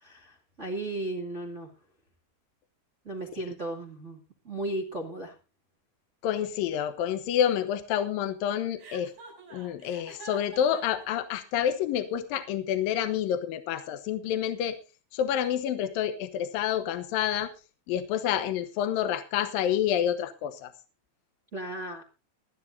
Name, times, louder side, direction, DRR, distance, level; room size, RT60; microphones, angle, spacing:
voice 1, 0.0-1.7 3.0-5.3 21.5-22.0, right 2 dB, 40° right, 0 dB, 1.0 m, -35 dB
voice 2, 6.2-9.1 9.5-14.8 15.1-17.5 17.9-20.7, left 10 dB, 75° left, 9 dB, 2.2 m, -28 dB
Chuckle chortle, 8.8-11.0, right 4 dB, 65° right, 9.2 m, -46 dB
22.0 x 13.0 x 2.7 m, 0.31 s
omnidirectional pair, 5.4 m